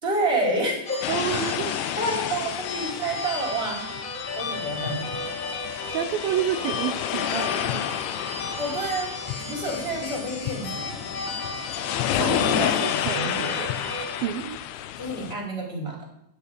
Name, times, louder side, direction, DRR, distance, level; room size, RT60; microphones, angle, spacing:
voice 1, 0.0-1.2 2.0-3.9 4.4-5.0 8.6-11.0 12.1-13.5 13.7-13.9 15.0-16.1, right 2 dB, 15° right, -2 dB, 3.9 m, -29 dB
sound 1, 0.9-14.2, left 3 dB, 55° left, 3.4 m, -34 dB
sound 2, 1.0-15.3, left 11 dB, 85° left, 3.0 m, -31 dB
voice 2, 1.1-2.0 5.7-8.1 12.2-13.8 14.2-14.6, right 9 dB, 80° right, 6 dB, 2.1 m, -30 dB
12.0 x 7.0 x 8.8 m, 0.78 s
omnidirectional pair, 5.2 m